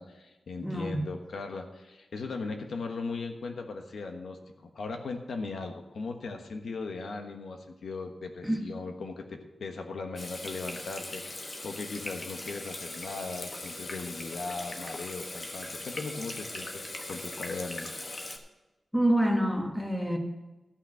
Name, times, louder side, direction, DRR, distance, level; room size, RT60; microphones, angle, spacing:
voice 1, 0.0-4.4 4.7-17.9, left 3 dB, 80° left, 4 dB, 1.3 m, -38 dB
voice 2, 0.6-1.0 8.4-8.7 18.9-20.2, right 1 dB, ahead, 2 dB, 1.5 m, -27 dB
Water tap faucet / Sink (filling or washing), 10.2-18.4, left 2 dB, 35° left, 1.2 m, -40 dB
13.0 x 6.0 x 6.0 m, 1.1 s
wide cardioid pair, 145°, 0 cm